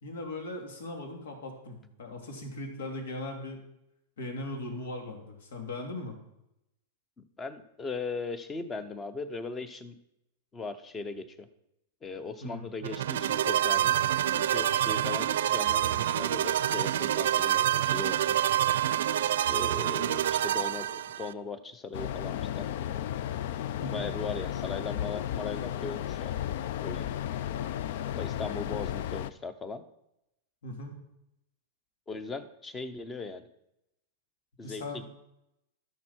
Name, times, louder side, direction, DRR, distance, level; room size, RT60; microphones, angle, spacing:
voice 1, 0.0-3.6 4.2-6.1 12.4-12.6 23.8-24.1 30.6-31.0 34.6-35.1, left 2 dB, 90° left, 2 dB, 3.0 m, -39 dB
voice 2, 7.2-9.9 10.5-11.5 12.0-14.0 14.3-18.4 19.5-22.7 23.9-26.4 26.8-27.1 28.1-29.8 32.1-33.4 34.6-35.1, left 4 dB, 10° left, 13 dB, 0.6 m, -38 dB
sound 1, 12.8-21.3, right 11 dB, 80° right, 0.6 m, -27 dB
sound 2, 21.9-29.3, left 11 dB, 50° left, 0.4 m, -34 dB
12.0 x 11.0 x 4.5 m, 0.83 s
supercardioid pair, 170°, 0 cm